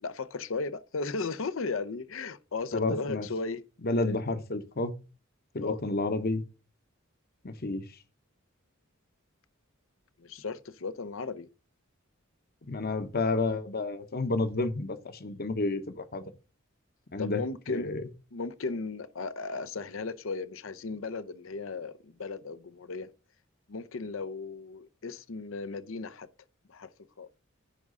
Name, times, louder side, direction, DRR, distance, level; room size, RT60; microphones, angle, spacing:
voice 1, 0.0-3.6 4.0-4.2 5.6-5.8 10.2-11.5 17.2-17.9 18.3-23.1 23.7-26.3 26.7-26.9 27.2-27.3, left 4 dB, 75° left, 0.7 m, -36 dB
voice 2, 2.7-3.3 3.8-4.9 5.5-6.4 7.4-7.8 12.7-16.2 17.1-18.0, left 2 dB, 50° left, 1.0 m, -30 dB
10.0 x 3.7 x 5.4 m
head